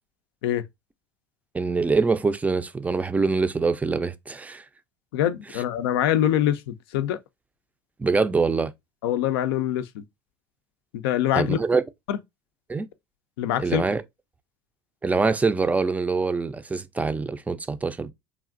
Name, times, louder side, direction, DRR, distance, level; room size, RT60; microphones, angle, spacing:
voice 1, 1.5-4.6 8.0-8.7 11.3-11.8 12.7-12.9 13.6-14.0 15.0-18.1, right 4 dB, 10° right, 0.4 m, -24 dB
voice 2, 5.1-7.2 9.0-10.0 10.9-11.6 12.1-12.2 13.4-13.8, left 11 dB, 75° left, 0.4 m, -24 dB
3.1 x 2.4 x 2.5 m
hypercardioid pair, 75°, 13 cm